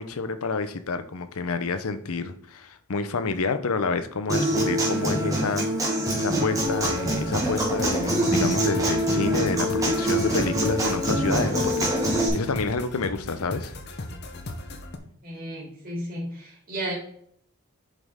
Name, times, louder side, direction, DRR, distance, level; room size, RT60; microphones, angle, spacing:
voice 1, 0.0-13.7, left 4 dB, 75° left, 10 dB, 0.7 m, -29 dB
Human voice / Acoustic guitar, 4.3-12.3, right 1 dB, 15° right, 1.7 m, -24 dB
sound 1, 6.6-15.0, left 2 dB, 50° left, 0.8 m, -37 dB
voice 2, 15.2-16.9, right 1 dB, 40° right, -5 dB, 3.0 m, -33 dB
7.4 x 5.3 x 3.7 m, 0.63 s
head